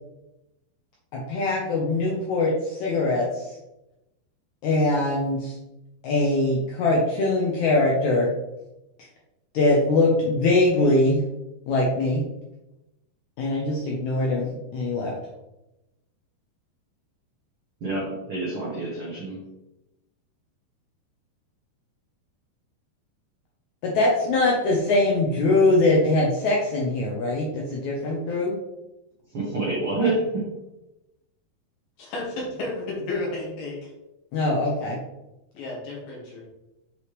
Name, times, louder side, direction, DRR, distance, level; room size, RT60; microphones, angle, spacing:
voice 1, 1.1-3.5 4.6-5.5 6.0-8.3 9.5-11.2 11.7-12.2 13.4-15.1 23.8-28.5 34.3-35.0, left 2 dB, 80° left, -3 dB, 1.6 m, -22 dB
voice 2, 17.8-19.4 29.3-30.5, right 2 dB, 65° right, -5 dB, 1.3 m, -27 dB
voice 3, 32.0-33.9 35.5-36.4, left 2 dB, 65° left, -4 dB, 3.7 m, -32 dB
8.2 x 4.9 x 3.2 m, 0.95 s
omnidirectional pair, 4.9 m